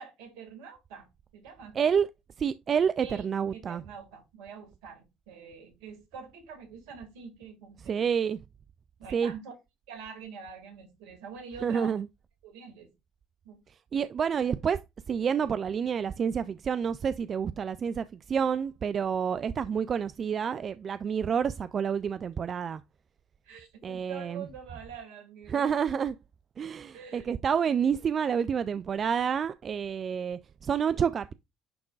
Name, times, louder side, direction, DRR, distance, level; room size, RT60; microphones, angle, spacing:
voice 1, 0.0-1.8 3.0-3.3 3.5-8.1 9.0-9.5 9.9-11.9 12.4-12.9 13.4-13.6 23.4-25.7 26.9-27.3, right 6 dB, 75° right, 1.9 m, -45 dB
voice 2, 1.8-2.1 2.4-3.8 7.8-8.4 9.1-9.3 11.6-12.1 13.9-14.8 15.1-22.8 23.8-24.5 25.5-26.1 26.6-31.3, right 7 dB, 45° right, 0.3 m, -28 dB
10.5 x 3.7 x 2.4 m
hypercardioid pair, 65°, 0 cm